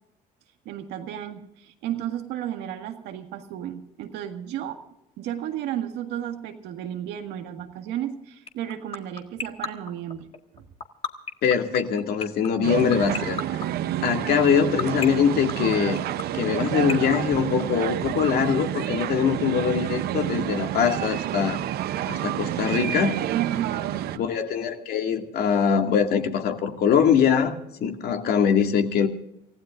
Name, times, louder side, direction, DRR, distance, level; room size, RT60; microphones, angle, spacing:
voice 1, 0.7-4.8 5.2-10.3 10.5-10.7 23.3-24.2, right 11 dB, 90° right, 5 dB, 1.8 m, -33 dB
sound 1, 8.5-18.1, left 5 dB, 35° left, 1.7 m, -29 dB
voice 2, 11.4-13.4 14.0-16.0 16.3-21.6 22.1-23.2 24.2-29.1, left 7 dB, 70° left, 4 dB, 2.2 m, -23 dB
sound 2, 12.6-24.2, right 12 dB, 70° right, 0.7 m, -29 dB
29.0 x 15.5 x 2.5 m, 0.85 s
cardioid pair, 110°, 17 cm